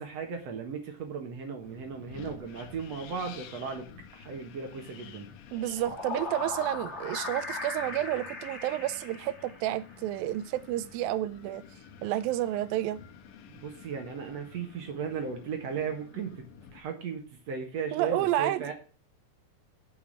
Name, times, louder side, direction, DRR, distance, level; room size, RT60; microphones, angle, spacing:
voice 1, 0.0-5.3 13.5-18.7, right 6 dB, 55° right, 2.2 m, -36 dB
Wind, 1.6-16.8, left 7 dB, 75° left, 2.7 m, -51 dB
sound 1, 5.5-10.0, left 3 dB, 25° left, 2.0 m, -38 dB
voice 2, 5.5-11.6 12.0-13.0 17.9-18.6, right 13 dB, 80° right, 2.4 m, -30 dB
7.9 x 7.1 x 7.7 m
omnidirectional pair, 4.2 m